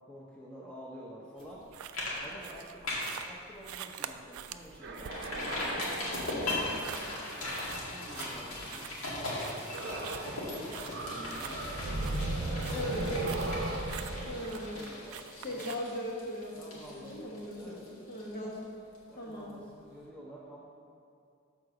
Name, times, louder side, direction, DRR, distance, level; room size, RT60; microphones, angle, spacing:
voice 1, 0.1-1.6 2.2-2.8 3.2-5.2 6.1-7.1 7.3-11.9 12.3-12.9 13.2-15.2 15.5-15.7 16.6-17.9 18.4-18.5 19.1-20.6, equal, 5° left, -5 dB, 0.8 m, -50 dB
sound 1, 1.4-1.6 1.9-2.2 2.5-3.2 3.7-3.8 4.2-4.3 5.1-18.6 18.9-19.0, left 2 dB, 80° left, 2.1 m, -38 dB
sound 2, 1.4-15.7, right 9 dB, 85° right, 0.4 m, -46 dB
sound 3, 4.8-8.6 9.7-10.5 10.7-15.6, right 2 dB, 50° right, 0.7 m, -37 dB
voice 2, 6.3-6.7 11.1-11.5 12.7-13.4 14.3-14.8 15.4-18.7 19.1-19.6, left 1 dB, 45° left, -4 dB, 1.5 m, -39 dB
6.5 x 4.9 x 6.5 m, 2.5 s
head